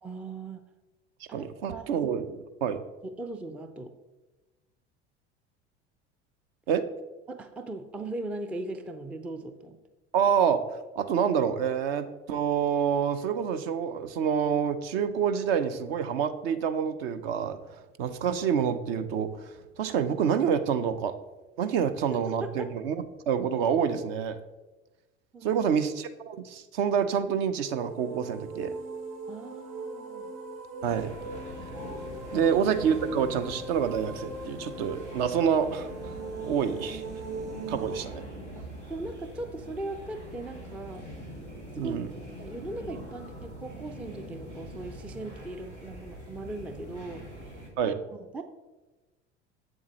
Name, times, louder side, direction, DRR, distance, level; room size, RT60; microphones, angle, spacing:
voice 1, 0.0-0.6 1.3-1.9 3.0-3.9 7.3-9.8 22.4-22.5 25.3-25.6 29.3-30.3 32.3-32.4 38.2-41.0 41.7-42.0 42.4-47.3 47.8-47.9 48.3-48.4, right 2 dB, 5° right, 8 dB, 0.3 m, -39 dB
voice 2, 1.3-2.8 6.7-6.9 10.1-17.6 18.0-21.1 21.6-24.4 25.4-28.7 30.8-31.1 32.3-35.9 36.4-37.0 37.7-38.2 41.7-42.1 47.8-48.0, right 7 dB, 60° right, 11 dB, 0.7 m, -27 dB
sound 1, 27.5-38.1, right 2 dB, 45° right, 1.6 m, -40 dB
sound 2, 30.8-47.7, equal, 85° right, 2.0 m, -43 dB
7.8 x 7.3 x 3.0 m, 1.1 s
figure-of-eight pair, 70°, 34 cm